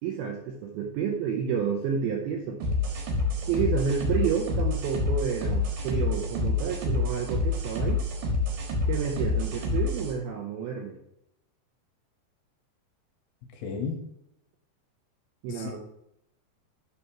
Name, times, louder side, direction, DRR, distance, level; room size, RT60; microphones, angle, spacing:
voice 1, 0.0-2.6 3.5-8.0 8.9-11.0 15.4-15.8, right 7 dB, 80° right, 1 dB, 2.2 m, -30 dB
sound 1, 2.6-10.1, left 3 dB, 65° right, 2.6 m, -28 dB
voice 2, 13.6-14.0 15.5-15.8, left 5 dB, 75° left, 3 dB, 2.6 m, -33 dB
8.1 x 3.3 x 5.9 m, 0.79 s
omnidirectional pair, 5.2 m